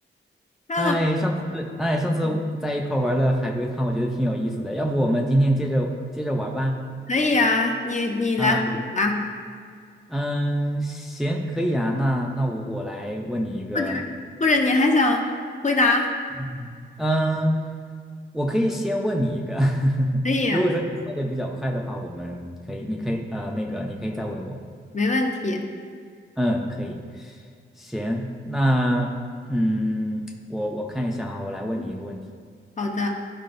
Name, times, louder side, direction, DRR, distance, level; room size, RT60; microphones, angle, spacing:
voice 1, 0.8-6.8 8.4-8.7 10.1-14.0 16.4-17.5 18.3-20.2 20.5-24.6 26.4-27.4 27.8-29.1 29.4-32.2, equal, ahead, 0 dB, 0.5 m, -25 dB
voice 2, 7.1-9.2 13.7-14.1 14.4-15.3 15.6-16.1 20.2-20.6 24.9-25.6 31.8-31.9 32.8-33.1, left 2 dB, 35° left, 2 dB, 0.8 m, -22 dB
12.0 x 4.6 x 2.6 m, 2.1 s
wide cardioid pair, 125°, 20 cm